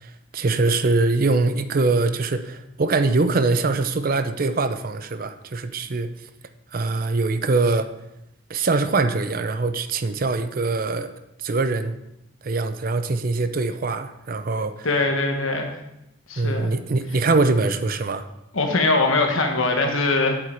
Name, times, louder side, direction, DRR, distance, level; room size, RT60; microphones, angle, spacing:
voice 1, 0.0-6.1 6.7-7.9 8.5-11.1 11.4-12.0 12.4-14.9 16.4-18.2, right 3 dB, 45° right, 10 dB, 0.5 m, -23 dB
voice 2, 14.8-15.7 16.3-16.7 18.5-20.4, left 3 dB, 75° left, 3 dB, 1.3 m, -21 dB
8.0 x 7.8 x 4.5 m, 0.87 s
head